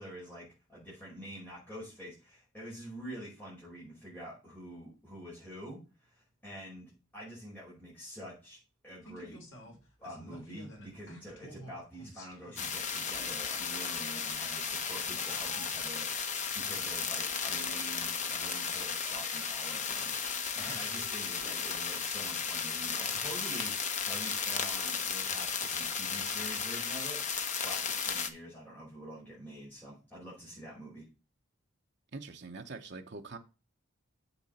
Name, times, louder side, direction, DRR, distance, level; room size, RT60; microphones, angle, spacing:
voice 1, 0.0-9.4 9.6-20.1 20.5-31.1, equal, 10° left, 5.3 m, -47 dB
Laughter, 9.0-22.0 22.3-22.4, left 1 dB, 60° left, 3.6 m, -52 dB
sound 1, 12.6-28.3, left 6 dB, 35° left, 0.9 m, -34 dB
voice 2, 32.1-33.4, right 3 dB, 50° right, 0.9 m, -44 dB
7.6 x 6.9 x 4.2 m
head